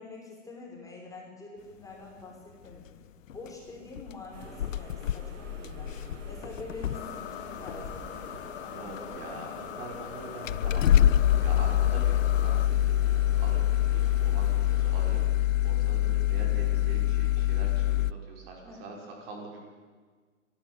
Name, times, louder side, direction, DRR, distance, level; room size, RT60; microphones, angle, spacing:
voice 1, 0.0-2.9 3.2-8.1 8.6-9.3 18.6-18.8, left 3 dB, 10° left, -2 dB, 5.3 m, -46 dB
sound 1, 3.3-3.5 4.0-4.1 4.4-7.2 7.7-8.1 9.0-9.1 9.9-10.0 10.5-18.1, left 12 dB, 80° left, 0.6 m, -25 dB
sound 2, 4.3-15.2, right 2 dB, 70° right, 7.7 m, -47 dB
sound 3, 6.9-12.7, left 12 dB, 55° left, 1.2 m, -41 dB
voice 2, 8.7-13.6 13.9-19.6, right 2 dB, 50° right, 0 dB, 6.0 m, -44 dB
27.5 x 12.0 x 8.2 m, 1.5 s
hypercardioid pair, 115°, 38 cm